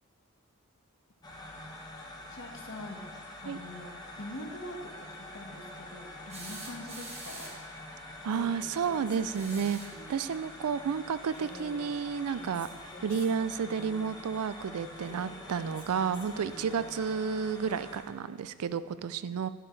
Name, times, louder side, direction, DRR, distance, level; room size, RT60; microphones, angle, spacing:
sound 1, 1.2-18.0, left 1 dB, 20° left, 1.1 m, -46 dB
voice 1, 2.3-3.1 3.4-3.9 4.2-7.6, left 1 dB, 65° left, 1 dB, 1.4 m, -44 dB
sound 2, 6.3-7.7 9.2-10.0 11.7-11.8 13.2-13.3, right 2 dB, 30° right, 1.6 m, -45 dB
Female speech woman speaking, 8.2-10.3 11.3-14.2 15.0-16.9, left 2 dB, 85° left, 3.2 m, -50 dB
voice 2, 8.2-12.7 13.0-19.5, right 6 dB, 90° right, 15 dB, 0.4 m, -31 dB
11.0 x 11.0 x 3.2 m, 1.5 s
head